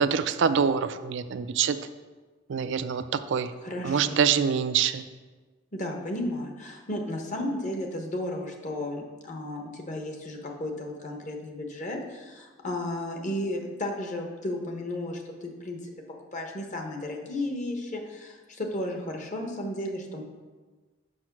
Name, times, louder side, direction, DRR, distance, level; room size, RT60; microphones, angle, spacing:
voice 1, 0.0-1.8 2.5-3.5 3.8-5.0, right 7 dB, 65° right, 11 dB, 0.4 m, -25 dB
voice 2, 3.6-4.3 5.7-15.8 16.3-20.2, left 1 dB, 40° left, 2 dB, 1.1 m, -34 dB
6.3 x 5.5 x 5.9 m, 1.3 s
head